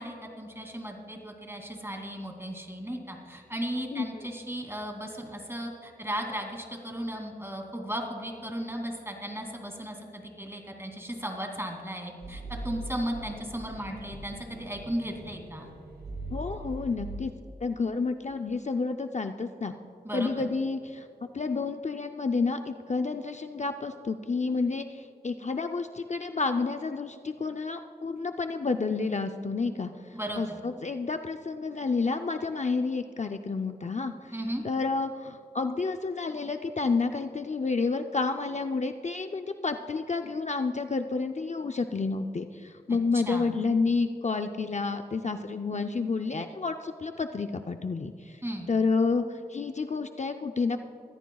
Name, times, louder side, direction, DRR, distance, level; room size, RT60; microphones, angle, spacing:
voice 1, 0.0-15.7 20.0-20.4 30.1-30.6 34.3-34.6 42.9-43.0 43.3-43.6 48.4-48.7, equal, 15° right, 1 dB, 2.6 m, -36 dB
sound 1, 12.2-17.2, right 1 dB, 70° right, 2.1 m, -41 dB
voice 2, 16.3-17.3 17.6-19.7 20.1-21.1 21.3-29.9 30.4-34.3 34.6-48.4 48.7-50.8, left 4 dB, 45° left, 6 dB, 0.5 m, -30 dB
23.0 x 15.0 x 2.3 m, 2.7 s
wide cardioid pair, 65°, 17 cm